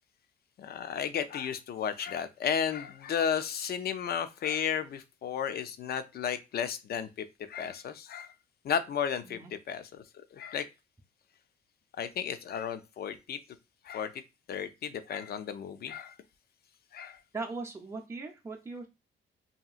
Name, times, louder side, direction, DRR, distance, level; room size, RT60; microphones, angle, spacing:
voice 1, 0.6-8.3 8.6-10.0 10.3-10.7 12.0-13.4 13.8-14.1 14.5-16.1 16.9-17.2, left 8 dB, 50° left, 0.5 m, -33 dB
voice 2, 17.3-18.9, right 3 dB, 15° right, 0.6 m, -39 dB
2.8 x 2.6 x 2.4 m
cardioid pair, 90°, 20 cm